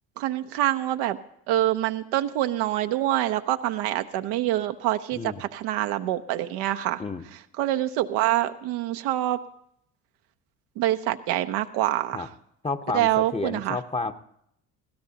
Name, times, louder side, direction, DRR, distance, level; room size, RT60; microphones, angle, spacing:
voice 1, 0.2-1.2 1.5-7.0 7.6-9.4 10.8-12.3 12.9-13.8, right 14 dB, 75° right, 7 dB, 0.8 m, -25 dB
voice 2, 5.1-5.4 7.0-7.2 12.1-12.3 12.6-14.1, left 3 dB, 15° left, 8 dB, 1.0 m, -30 dB
22.0 x 16.5 x 2.9 m, 0.72 s
hypercardioid pair, 60°, 39 cm